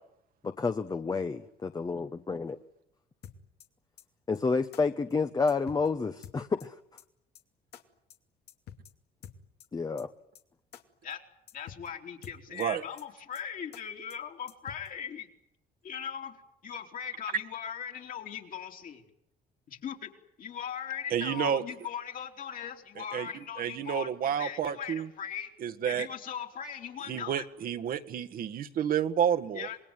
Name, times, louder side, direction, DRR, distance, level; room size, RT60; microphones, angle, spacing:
voice 1, 0.4-2.6 4.3-6.7 9.7-10.1, left 4 dB, 20° left, 8 dB, 1.1 m, -30 dB
sound 1, 3.2-3.7 4.0-4.1 4.3-4.4 4.7-4.8 5.1-5.2 5.5-5.9 6.2-6.7 7.0-7.1 7.3-7.4 7.7-7.8 8.1-8.2 8.5-8.9 9.2-9.7 10.0-10.1 10.3-10.4 10.7-10.8 11.1-11.2 11.5-11.9 12.2-12.7 13.0-13.1 13.3-13.4 13.7-13.8 14.1-14.2 14.5-14.9, left 9 dB, 75° left, 2.6 m, -48 dB
voice 2, 11.5-15.3 15.8-16.4 16.6-19.0 19.7-20.1 20.4-25.5 25.9-27.5 29.5-29.8, left 8 dB, 55° left, 3 dB, 3.8 m, -39 dB
voice 3, 21.1-21.6 23.1-25.1 25.6-26.1 27.1-29.7, right 9 dB, 60° right, 7 dB, 1.7 m, -30 dB
27.0 x 20.5 x 9.2 m, 0.78 s
cardioid pair, 110°, 17 cm